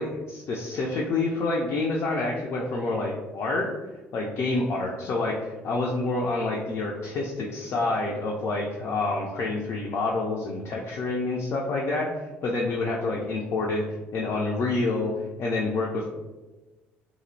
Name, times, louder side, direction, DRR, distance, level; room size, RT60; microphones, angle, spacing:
voice 1, 0.0-3.7 4.1-12.1 12.4-13.8 14.1-15.1 15.4-16.1, left 3 dB, 45° left, -2 dB, 0.4 m, -27 dB
2.6 x 2.0 x 2.6 m, 1.2 s
hypercardioid pair, 55°, 6 cm